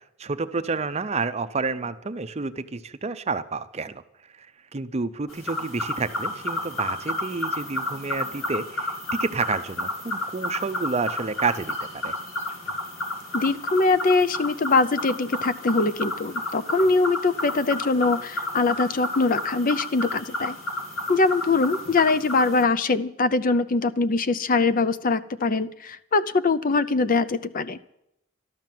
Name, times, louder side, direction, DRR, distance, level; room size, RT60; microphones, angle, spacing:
voice 1, 0.2-4.0 4.4-4.5 4.7-12.1, right 4 dB, 30° right, 11 dB, 0.6 m, -29 dB
sound 1, 5.3-22.6, left 1 dB, 60° left, 2.6 m, -31 dB
voice 2, 13.3-20.6 21.1-27.8, left 3 dB, 40° left, 14 dB, 0.5 m, -22 dB
12.5 x 12.0 x 7.6 m, 0.81 s
head